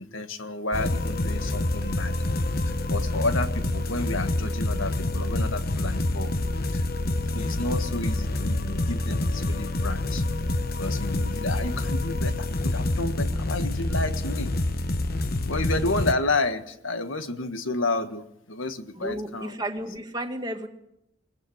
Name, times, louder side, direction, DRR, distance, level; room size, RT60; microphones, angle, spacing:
voice 1, 0.0-2.1 2.6-6.3 6.7-6.8 7.2-10.2 10.8-14.5 15.4-19.5, left 2 dB, 75° left, 9 dB, 1.7 m, -31 dB
sound 1, 0.7-16.1, left 2 dB, 45° left, 1.1 m, -27 dB
voice 2, 19.0-20.7, right 1 dB, 20° right, 4 dB, 2.1 m, -33 dB
22.0 x 19.0 x 8.0 m, 0.80 s
head